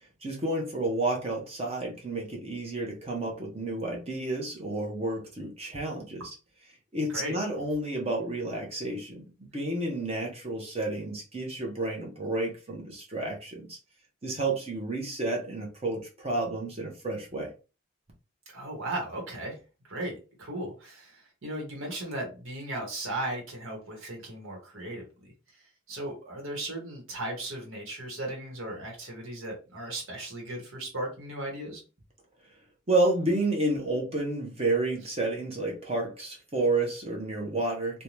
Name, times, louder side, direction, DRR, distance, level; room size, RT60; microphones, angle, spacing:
voice 1, 0.2-6.2 6.9-9.2 9.5-13.8 14.2-17.5 32.9-38.0, right 2 dB, 30° right, 0 dB, 0.7 m, -30 dB
voice 2, 18.5-19.6 19.8-31.8, right 1 dB, 80° right, 1 dB, 1.1 m, -37 dB
2.6 x 2.2 x 3.0 m, 0.32 s
head